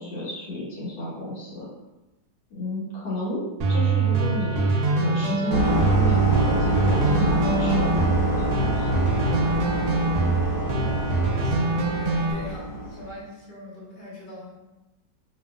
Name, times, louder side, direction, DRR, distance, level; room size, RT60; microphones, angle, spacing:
voice 1, 0.0-1.7 2.5-3.4 3.7-9.3, left 1 dB, 80° left, -8 dB, 1.7 m, -33 dB
sound 1, 3.6-12.3, right 3 dB, 70° right, 1.0 m, -24 dB
sound 2, 5.5-13.1, right 1 dB, 40° right, 0.6 m, -26 dB
voice 2, 10.7-11.1 11.4-14.5, left 2 dB, 45° left, -8 dB, 1.2 m, -41 dB
2.8 x 2.6 x 2.3 m, 1.0 s
omnidirectional pair, 1.9 m